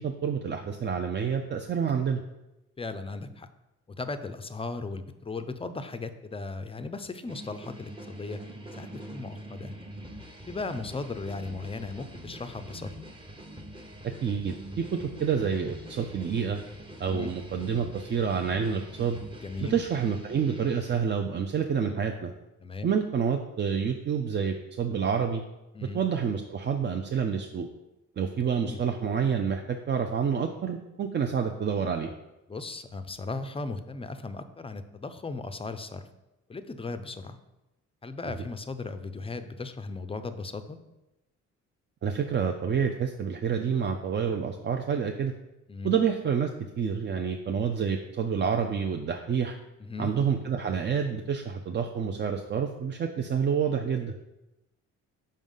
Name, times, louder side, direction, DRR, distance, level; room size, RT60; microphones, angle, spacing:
voice 1, 0.0-2.2 14.0-16.6 17.0-19.2 19.6-22.3 22.8-25.4 25.8-27.7 28.2-32.1 42.0-45.3 45.8-46.5 46.8-49.6 50.0-54.1, right 7 dB, 35° right, 4 dB, 0.5 m, -28 dB
voice 2, 2.8-3.5 3.9-8.4 8.7-9.7 10.5-13.1 17.1-17.3 19.4-19.7 22.6-22.9 25.7-26.0 28.6-28.8 32.5-36.1 36.5-37.4 38.0-40.8 45.7-45.9 49.8-50.1, left 3 dB, 20° left, 10 dB, 0.4 m, -37 dB
sound 1, 7.3-21.0, equal, 15° right, 0.9 m, -44 dB
5.4 x 3.7 x 5.4 m, 0.96 s
cardioid pair, 90°, 30 cm